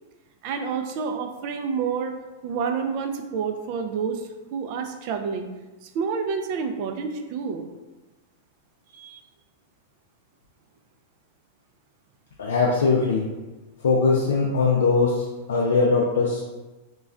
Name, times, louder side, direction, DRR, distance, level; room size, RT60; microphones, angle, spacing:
voice 1, 0.4-2.1 2.4-5.5 5.8-7.7 8.9-9.2, right 6 dB, 50° right, 5 dB, 0.3 m, -29 dB
voice 2, 12.4-13.3 13.8-16.4, left 4 dB, 90° left, -2 dB, 0.3 m, -21 dB
2.3 x 2.1 x 3.6 m, 1.1 s
hypercardioid pair, 130°, 0 cm